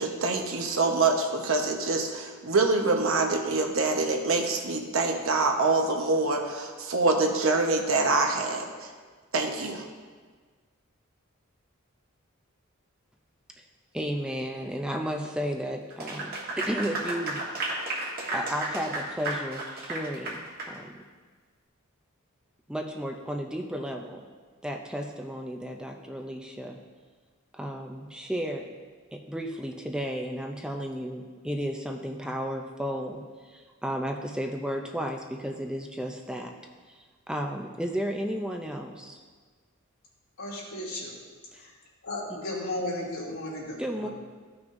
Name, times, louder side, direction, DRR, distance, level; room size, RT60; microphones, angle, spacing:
voice 1, 0.0-8.9 9.3-9.9, right 3 dB, 65° right, 2 dB, 1.0 m, -25 dB
voice 2, 13.9-17.5 18.3-20.9 22.7-24.3 24.6-26.8 27.5-28.7 29.1-36.5 36.9-39.2 41.5-41.6 42.3-42.4 43.8-44.1, equal, 5° right, 2 dB, 0.4 m, -33 dB
Clapping / Applause, 15.9-20.8, right 2 dB, 45° right, 1.5 m, -33 dB
voice 3, 40.4-41.1 41.6-41.7 42.0-44.1, left 1 dB, 80° left, -6 dB, 2.6 m, -34 dB
14.5 x 6.0 x 2.6 m, 1.5 s
head